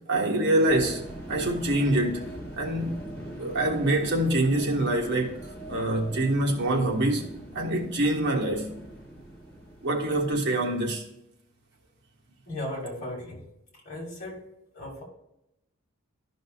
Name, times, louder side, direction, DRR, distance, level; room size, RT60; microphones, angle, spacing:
voice 1, 0.1-1.0 1.3-5.4 5.7-7.3 7.5-8.7 9.8-11.0, right 1 dB, 55° right, 1.5 m, -25 dB
sound 1, 0.6-10.3, right 1 dB, 10° left, 1.9 m, -42 dB
voice 2, 12.5-13.4 13.8-14.4 14.7-15.0, left 1 dB, 35° left, 2.6 m, -36 dB
13.0 x 5.2 x 2.4 m
head